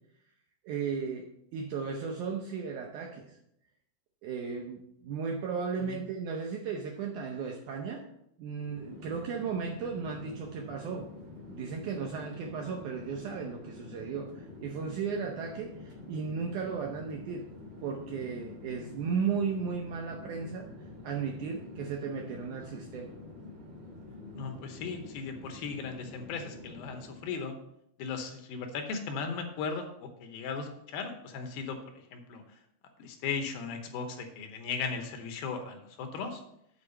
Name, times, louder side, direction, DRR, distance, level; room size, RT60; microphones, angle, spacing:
voice 1, 0.6-3.4 4.2-8.0 8.4-11.1 11.5-17.4 17.8-20.7 21.0-23.1, right 6 dB, 80° right, 2 dB, 1.8 m, -35 dB
Chatter / Fixed-wing aircraft airplane, 8.5-27.4, left 2 dB, 55° right, 3.3 m, -47 dB
voice 2, 24.3-27.6 28.0-31.8 32.1-32.4 33.0-36.4, left 5 dB, 75° left, 5 dB, 2.7 m, -37 dB
8.6 x 4.5 x 6.5 m, 0.76 s
omnidirectional pair, 4.4 m